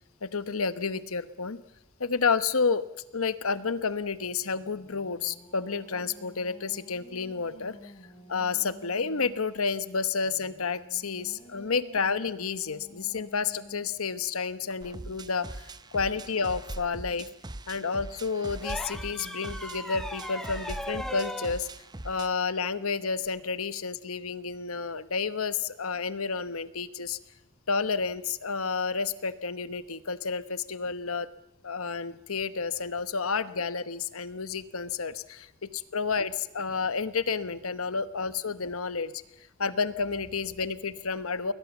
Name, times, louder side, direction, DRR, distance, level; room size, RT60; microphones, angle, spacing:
voice 1, 0.2-1.6 2.0-2.8 3.1-7.9 8.3-17.3 17.7-21.7 22.0-27.2 27.7-31.3 31.6-39.1 39.6-41.5, left 5 dB, 85° left, 14 dB, 1.0 m, -30 dB
Singing, 4.2-9.6 10.2-14.1, equal, 25° left, 2.8 m, -52 dB
sound 1, 14.8-22.3, right 2 dB, 20° right, 0.7 m, -41 dB
sound 2, 18.6-21.6 23.2-23.4, equal, ahead, 1.3 m, -37 dB
20.5 x 20.5 x 7.1 m, 0.99 s
head